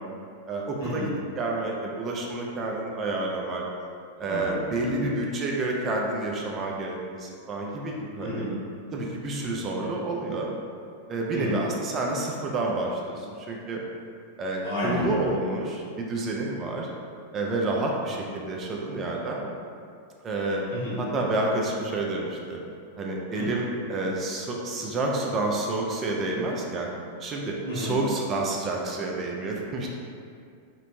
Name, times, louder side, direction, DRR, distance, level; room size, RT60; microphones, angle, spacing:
voice 1, 0.5-3.6 4.2-8.5 8.9-10.5 11.1-13.8 14.4-16.9 17.3-19.5 20.2-20.6 21.0-22.6 23.0-26.9 27.2-29.9, right 2 dB, 30° right, -1 dB, 0.4 m, -29 dB
voice 2, 4.2-5.1 8.2-8.5 11.3-11.6 14.6-15.3 20.7-20.9 23.3-23.5 27.6-27.9, equal, 70° left, -7 dB, 1.0 m, -31 dB
3.0 x 2.1 x 2.6 m, 2.3 s
hypercardioid pair, 100°, 0 cm